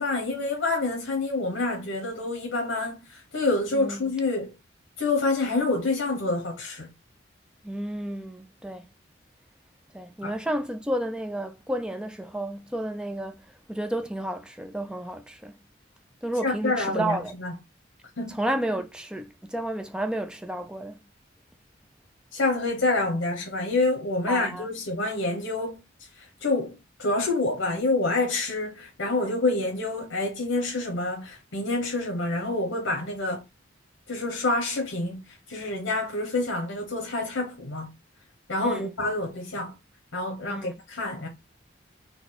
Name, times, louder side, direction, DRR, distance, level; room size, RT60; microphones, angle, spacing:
voice 1, 0.0-4.5 5.0-6.9 10.2-10.3 16.4-17.5 18.2-18.4 22.3-25.8 26.4-33.4 34.1-35.2 35.5-37.9 38.5-39.7 40.1-41.3, left 2 dB, 75° left, 1.1 m, -27 dB
voice 2, 3.7-4.0 7.6-8.9 9.9-15.6 16.2-17.3 18.3-21.0 24.3-24.7 38.6-38.9 40.5-40.7, right 1 dB, 5° right, 0.5 m, -31 dB
4.1 x 2.3 x 4.2 m
head